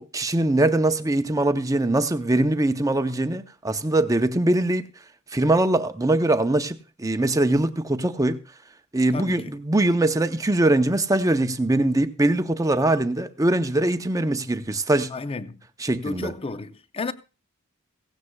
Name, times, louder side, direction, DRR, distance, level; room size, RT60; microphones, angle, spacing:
voice 1, 0.0-4.8 5.3-8.4 8.9-15.1 15.8-16.3, right 1 dB, 15° right, 0.6 m, -22 dB
voice 2, 9.1-9.6 15.1-15.6 16.0-17.1, left 3 dB, 25° left, 0.5 m, -32 dB
16.5 x 16.0 x 2.3 m
head